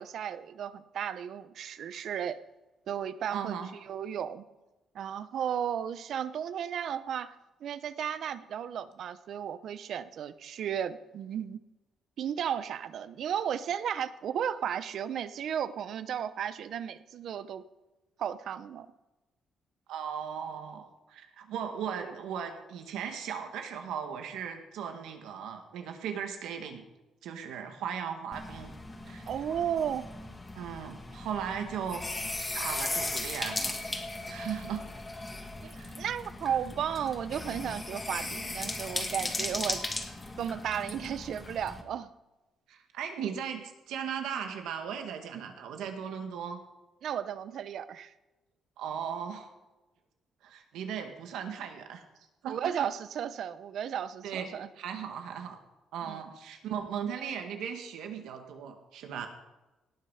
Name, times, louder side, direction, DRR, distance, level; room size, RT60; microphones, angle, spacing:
voice 1, 0.0-2.4 2.9-4.4 4.9-7.3 7.6-11.6 12.2-17.6 18.2-18.9 21.9-22.1 29.3-30.1 35.6-39.8 40.4-42.1 45.3-45.4 47.0-48.1 52.4-54.7 56.1-56.2, right 9 dB, 70° right, 14 dB, 0.8 m, -34 dB
voice 2, 3.3-3.7 19.9-26.8 27.2-28.7 29.0-29.3 30.5-32.0 32.5-33.8 34.3-34.8 35.7-35.9 42.7-46.6 48.8-49.5 50.4-52.0 52.4-52.9 54.2-54.5 54.8-55.6 55.9-59.3, right 8 dB, 85° right, 5 dB, 1.9 m, -37 dB
sound 1, 28.3-41.8, left 2 dB, 25° left, 2.1 m, -37 dB
18.0 x 8.3 x 5.8 m, 1.1 s
cardioid pair, 90°, 0 cm